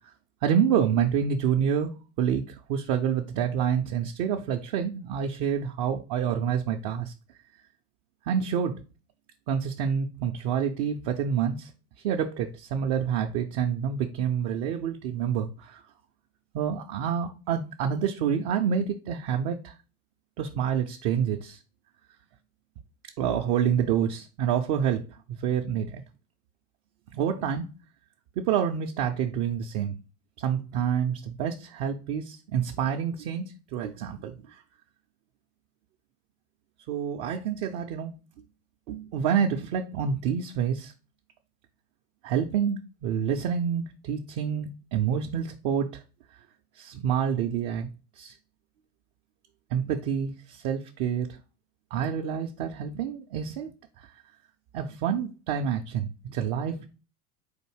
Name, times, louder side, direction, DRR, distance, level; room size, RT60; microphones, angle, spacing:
voice 1, 0.4-7.1 8.3-8.8 9.5-11.7 12.0-15.8 16.5-19.7 20.4-21.6 23.2-25.0 25.3-26.0 27.1-27.7 28.4-30.0 30.4-34.6 36.9-38.2 38.9-40.9 42.2-46.0 46.8-47.9 48.2-48.4 49.7-51.4 51.9-53.7 54.0-54.1 54.7-56.9, right 8 dB, 40° right, 0.5 m, -28 dB
4.3 x 2.6 x 4.6 m
hypercardioid pair, 90°, 45 cm